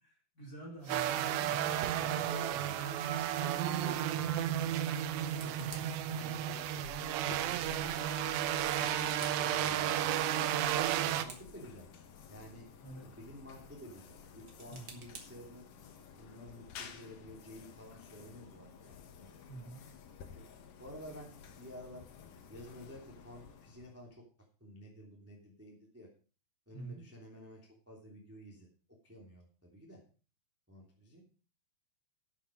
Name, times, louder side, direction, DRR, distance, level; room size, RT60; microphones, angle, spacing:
voice 1, 0.3-1.8 12.8-13.0 14.7-14.9 19.4-19.8 26.7-27.1, right 2 dB, 25° left, -2 dB, 2.7 m, -47 dB
sound 1, 0.7-16.0, right 4 dB, 60° right, 1.2 m, -58 dB
sound 2, 0.9-11.2, right 11 dB, 75° right, 2.7 m, -33 dB
voice 2, 2.0-4.8 5.4-7.8 8.8-10.5 11.2-11.9 12.3-12.7 13.0-15.7 16.1-19.3 20.3-20.4 20.8-22.0 22.5-24.2 24.6-26.1 26.6-28.7 29.0-30.0 30.7-31.2, equal, 5° right, -2 dB, 1.4 m, -51 dB
sound 3, 6.8-24.2, left 7 dB, 75° left, 1.8 m, -53 dB
11.5 x 8.4 x 5.2 m, 0.38 s
omnidirectional pair, 5.5 m